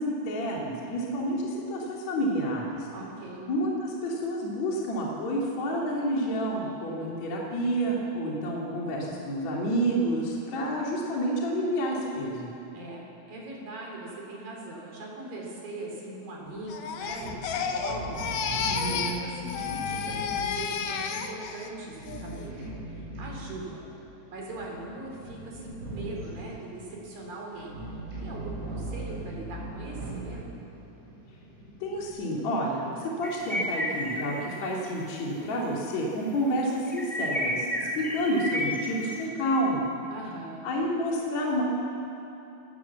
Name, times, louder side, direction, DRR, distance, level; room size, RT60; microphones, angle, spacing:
voice 1, 0.0-2.9 3.5-12.5 18.7-19.2 31.8-39.8 40.6-41.6, equal, 40° left, -3 dB, 3.6 m, -29 dB
voice 2, 2.9-3.5 12.7-23.8 24.3-27.8 28.2-30.5 40.1-40.6, right 2 dB, 50° right, -2 dB, 5.5 m, -40 dB
Crying sobbing, 16.7-19.2 19.5-21.7 22.1-22.5, left 6 dB, 70° left, 2.0 m, -31 dB
sound 1, 17.0-32.1, right 2 dB, 70° right, 10.0 m, -40 dB
sound 2, 33.2-34.3 34.6-34.9 35.2-35.3 36.9-39.1, equal, ahead, 3.2 m, -31 dB
30.0 x 18.0 x 7.2 m, 3.0 s
omnidirectional pair, 5.5 m